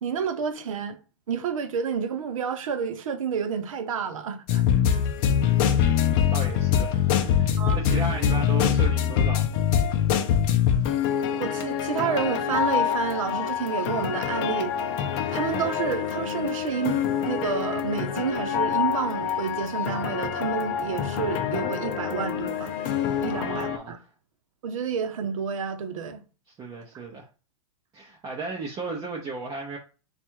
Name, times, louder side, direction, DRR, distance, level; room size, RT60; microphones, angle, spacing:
voice 1, 0.0-1.0 1.3-4.6 4.9-5.1 7.6-7.8 11.4-14.8 15.3-22.8 23.2-24.0 24.6-26.2, right 7 dB, 80° right, 0.8 m, -29 dB
sound 1, 4.5-23.8, left 9 dB, 45° left, 0.6 m, -25 dB
voice 2, 5.2-5.7 6.3-9.6 23.3-23.9 26.6-27.3 27.9-29.8, right 4 dB, 20° right, 0.7 m, -35 dB
3.4 x 2.4 x 4.5 m
hypercardioid pair, 140°, 17 cm